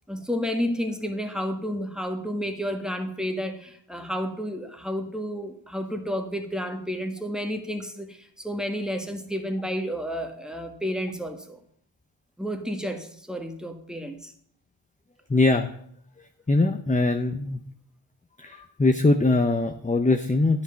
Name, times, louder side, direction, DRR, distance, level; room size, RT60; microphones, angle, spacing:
voice 1, 0.1-11.6 12.4-14.3, equal, ahead, 5 dB, 1.5 m, -31 dB
voice 2, 15.3-15.7 16.5-17.6 18.4-20.6, left 2 dB, 15° left, 7 dB, 0.7 m, -22 dB
10.0 x 5.4 x 6.9 m, 0.65 s
cardioid pair, 55°, 49 cm